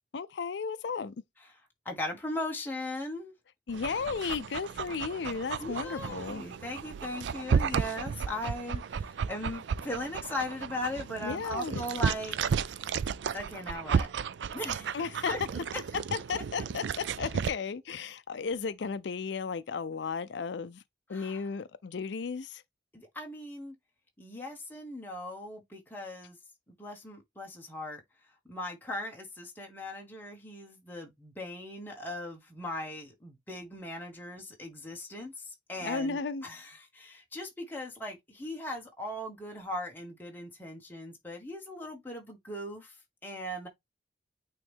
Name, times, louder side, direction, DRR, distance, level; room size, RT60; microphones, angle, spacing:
voice 1, 0.1-1.1 3.7-6.4 11.2-11.8 14.9-15.3 16.3-20.8 21.1-22.6 35.8-36.4, left 5 dB, 75° left, 0.4 m, -34 dB
voice 2, 1.4-3.3 5.6-12.4 13.3-14.1 14.5-15.4 15.7-16.0 21.1-21.5 22.9-23.8 24.2-26.4 26.7-28.0 28.4-43.7, left 1 dB, 10° left, 1.5 m, -39 dB
Dog, 3.7-17.5, right 6 dB, 80° right, 0.4 m, -33 dB
8.9 x 3.1 x 3.5 m
head